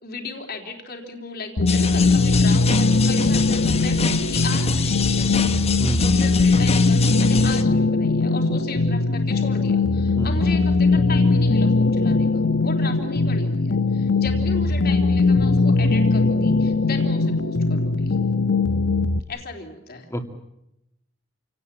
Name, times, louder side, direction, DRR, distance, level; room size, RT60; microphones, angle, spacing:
voice 1, 0.0-5.6 6.1-18.2 19.3-20.1, left 3 dB, 55° left, 2 dB, 3.8 m, -36 dB
sound 1, 1.6-19.2, left 3 dB, 80° left, 1.0 m, -20 dB
sound 2, 1.7-7.6, left 4 dB, 35° left, 1.3 m, -27 dB
voice 2, 5.8-6.1 10.1-10.4 20.1-20.2, equal, 15° left, 5 dB, 2.5 m, -27 dB
28.0 x 18.5 x 9.0 m, 0.85 s
head